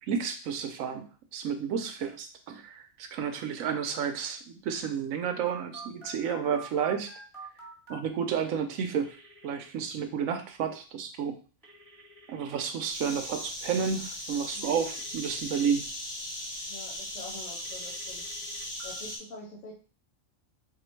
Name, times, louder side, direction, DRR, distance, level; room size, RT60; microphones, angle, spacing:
voice 1, 0.1-1.0 1.3-7.1 7.9-9.2 9.4-11.3 12.3-15.8, right 7 dB, 85° right, 7 dB, 1.1 m, -31 dB
Telephone, 5.5-8.0 9.0-9.7 11.6-12.6 14.6-15.6 17.6-18.9, right 3 dB, 15° right, 1.4 m, -48 dB
sound 1, 12.9-19.2, left 1 dB, 25° left, 1.1 m, -38 dB
voice 2, 16.7-18.2 18.8-19.7, left 3 dB, 80° left, -2 dB, 1.3 m, -45 dB
3.6 x 2.4 x 4.4 m, 0.37 s
omnidirectional pair, 1.4 m